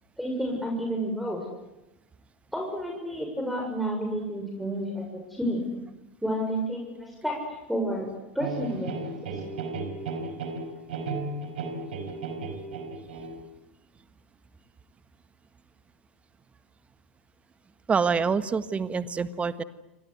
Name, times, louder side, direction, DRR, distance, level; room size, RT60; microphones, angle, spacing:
voice 1, 0.2-1.4 2.5-5.6 6.2-7.3 7.7-8.1 8.3-9.4, equal, ahead, 1 dB, 6.9 m, -30 dB
sound 1, 8.4-13.4, right 3 dB, 65° right, 5.2 m, -34 dB
voice 2, 17.9-19.6, right 5 dB, 20° right, 12 dB, 1.6 m, -26 dB
28.0 x 25.5 x 8.2 m, 0.98 s
figure-of-eight pair, 85°, 6 cm